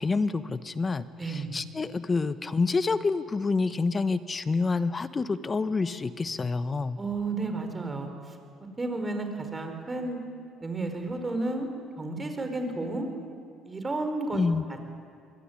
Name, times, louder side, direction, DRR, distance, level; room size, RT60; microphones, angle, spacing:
voice 1, 0.0-7.0 14.3-14.6, left 4 dB, 25° left, 12 dB, 1.2 m, -28 dB
voice 2, 1.2-1.5 7.0-8.4 8.8-10.2 10.6-11.7 12.0-13.1 13.6-14.4 14.7-14.8, right 2 dB, 20° right, 5 dB, 5.2 m, -32 dB
26.0 x 23.0 x 9.9 m, 2.3 s
supercardioid pair, 90°, 0 cm